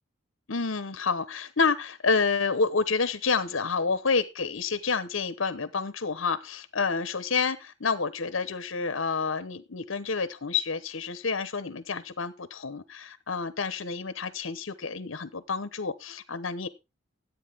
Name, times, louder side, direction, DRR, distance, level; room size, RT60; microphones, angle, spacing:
voice 1, 0.5-16.7, left 4 dB, 75° left, 14 dB, 1.0 m, -29 dB
14.5 x 8.5 x 3.6 m, 0.26 s
head